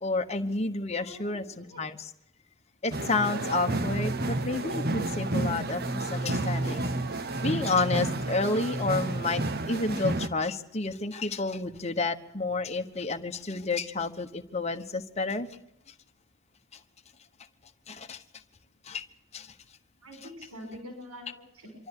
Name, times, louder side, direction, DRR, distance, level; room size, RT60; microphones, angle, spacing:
voice 1, 0.0-2.1 2.8-6.9 7.4-15.5 17.9-18.2 18.8-19.0 19.3-19.5, left 3 dB, 30° left, 6 dB, 1.2 m, -30 dB
voice 2, 0.9-1.8 20.0-21.7, equal, 85° right, 4 dB, 6.5 m, -45 dB
sound 1, 2.9-10.3, right 2 dB, 45° right, 1.2 m, -30 dB
26.0 x 13.0 x 9.9 m, 0.78 s
head